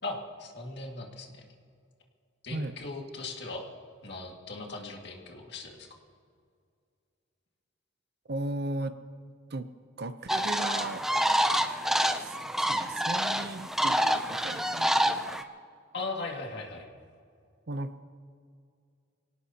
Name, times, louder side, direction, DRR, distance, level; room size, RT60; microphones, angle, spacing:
voice 1, 0.0-1.5 2.4-3.6 4.0-5.9 15.9-16.9, left 3 dB, 55° left, 0 dB, 2.0 m, -38 dB
voice 2, 8.3-9.0 9.5-9.7 10.0-11.4 12.2-15.3 17.7-18.0, right 2 dB, 50° right, 10 dB, 0.6 m, -37 dB
sound 1, 10.3-15.4, equal, ahead, 0.4 m, -27 dB
24.0 x 17.5 x 2.9 m, 2.3 s
head